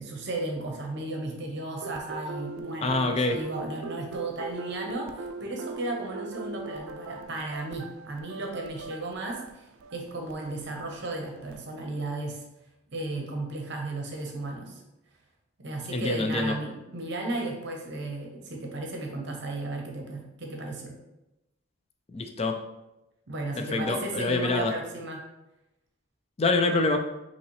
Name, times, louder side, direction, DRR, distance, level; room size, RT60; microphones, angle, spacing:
voice 1, 0.0-12.4 12.9-14.8 15.6-20.9 23.3-25.2, right 2 dB, 55° right, 1 dB, 0.7 m, -35 dB
sound 1, 1.8-11.6, right 4 dB, 80° right, 0.3 m, -41 dB
voice 2, 2.8-3.4 15.9-16.5 22.1-22.6 23.6-24.7 26.4-27.0, left 3 dB, 30° left, 5 dB, 0.3 m, -26 dB
5.5 x 2.9 x 3.1 m, 0.94 s
head